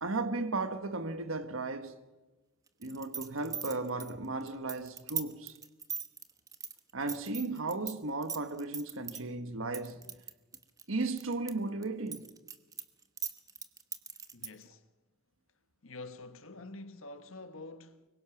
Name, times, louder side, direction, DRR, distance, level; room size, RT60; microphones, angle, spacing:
voice 1, 0.0-2.0 2.8-5.5 6.9-10.0 10.9-12.2, right 3 dB, 80° right, 1.4 m, -35 dB
sound 1, 2.8-7.9 8.2-9.2 9.7-11.5 11.8-14.6, right 7 dB, 15° right, 1.1 m, -39 dB
voice 2, 14.3-14.9 15.8-18.1, left 2 dB, 80° left, 1.3 m, -47 dB
25.0 x 22.5 x 6.0 m
head